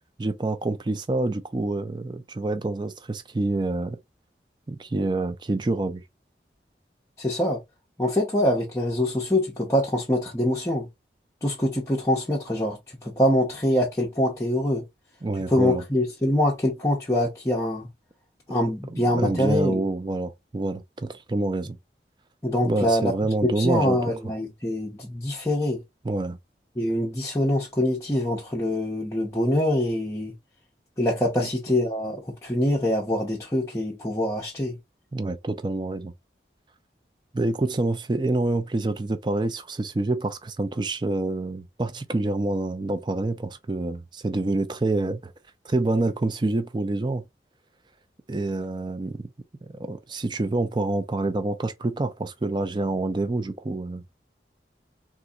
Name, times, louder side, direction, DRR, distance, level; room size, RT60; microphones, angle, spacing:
voice 1, 0.2-4.0 4.7-6.0 15.2-15.8 18.9-21.8 22.6-24.0 26.0-26.4 31.4-31.5 35.1-36.1 37.3-45.3 45.6-47.2 48.3-49.3 49.6-54.1, right 2 dB, 25° right, 0.4 m, -27 dB
voice 2, 7.2-7.6 8.0-10.9 11.4-14.8 15.5-17.9 18.5-19.8 22.4-23.1 23.4-25.8 26.8-30.3 31.0-34.8, left 1 dB, 15° left, 0.6 m, -24 dB
4.0 x 2.5 x 2.3 m
head